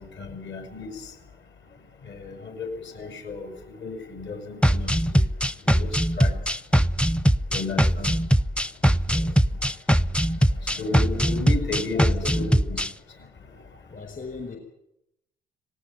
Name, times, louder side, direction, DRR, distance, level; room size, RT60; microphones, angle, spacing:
voice 1, 0.2-0.9 2.1-3.5 3.8-5.2 5.7-5.9 6.2-6.3 7.5-8.1 10.8-12.8, left 3 dB, 65° left, 5 dB, 6.8 m, -33 dB
sound 1, 4.6-12.9, equal, 5° left, 0.7 m, -21 dB
voice 2, 7.7-8.0 9.1-9.4 11.9-12.5 13.9-14.6, left 4 dB, 45° left, 4 dB, 5.3 m, -39 dB
18.5 x 17.5 x 9.2 m, 0.83 s
hypercardioid pair, 60°, 20 cm